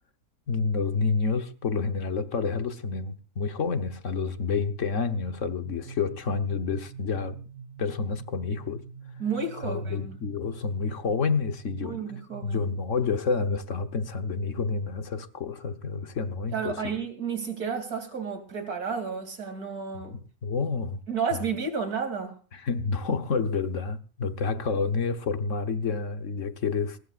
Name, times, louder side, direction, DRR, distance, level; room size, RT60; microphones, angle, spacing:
voice 1, 0.5-7.4 7.8-8.8 9.6-12.0 12.4-16.9 20.1-21.0 22.5-27.0, left 4 dB, 60° left, 1.5 m, -29 dB
sound 1, 5.3-12.8, right 6 dB, 45° right, 1.0 m, -45 dB
voice 2, 9.2-10.2 11.8-12.7 16.5-20.1 21.1-22.4, right 5 dB, 85° right, 3.4 m, -31 dB
21.0 x 20.0 x 2.5 m
omnidirectional pair, 1.5 m